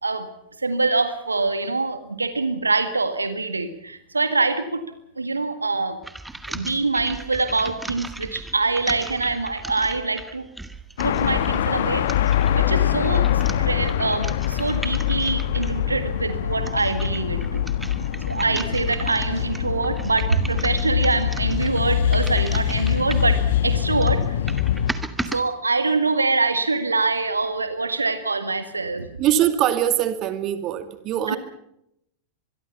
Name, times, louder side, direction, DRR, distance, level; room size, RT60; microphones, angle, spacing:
voice 1, 0.6-4.8 5.2-6.0 6.5-10.5 11.0-12.1 12.5-17.6 18.3-24.4 25.2-29.1 31.3-31.4, right 3 dB, 80° right, 10 dB, 1.8 m, -24 dB
sound 1, 6.0-15.9 16.4-23.4 23.8-25.4, right 2 dB, 5° right, 1.9 m, -37 dB
sound 2, 11.0-24.9, left 10 dB, 55° left, 1.7 m, -23 dB
voice 2, 29.2-31.4, right 11 dB, 35° right, 10 dB, 2.5 m, -22 dB
25.0 x 22.5 x 5.7 m, 0.76 s
figure-of-eight pair, 90°, 0 cm